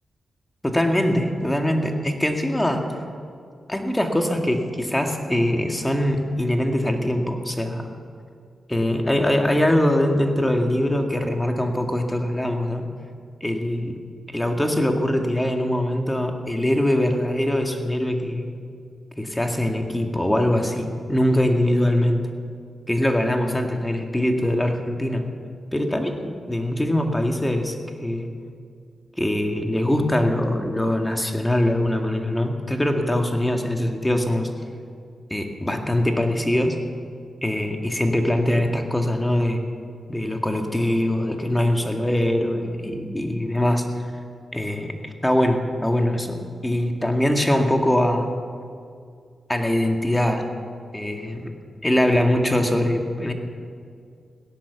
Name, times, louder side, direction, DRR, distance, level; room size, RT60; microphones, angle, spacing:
voice 1, 0.6-2.8 3.7-7.8 8.7-12.8 13.4-14.0 14.3-18.5 19.2-22.3 22.9-25.3 25.7-28.3 29.2-34.5 35.3-36.8 37.4-39.6 40.1-43.8 44.5-48.3 49.5-50.5 50.9-51.5 51.8-53.3, left 1 dB, 10° left, 3 dB, 2.0 m, -22 dB
17.0 x 11.0 x 7.2 m, 2.3 s
cardioid pair, 65°, 0 cm